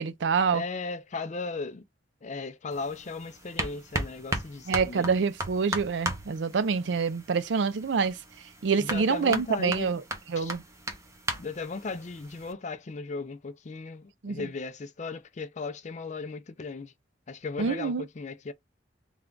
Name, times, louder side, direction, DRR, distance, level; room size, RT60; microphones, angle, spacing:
voice 1, 0.0-0.6 4.7-8.2 8.6-10.0 10.3-10.6 14.2-14.5 17.6-18.0, right 5 dB, 80° right, 0.4 m, -26 dB
voice 2, 0.5-1.8 2.2-5.1 8.8-9.9 10.4-10.5 11.4-16.9 17.3-18.5, left 3 dB, 40° left, 0.4 m, -36 dB
sound 1, 2.7-12.5, right 1 dB, 15° right, 0.7 m, -37 dB
3.3 x 2.3 x 3.7 m
head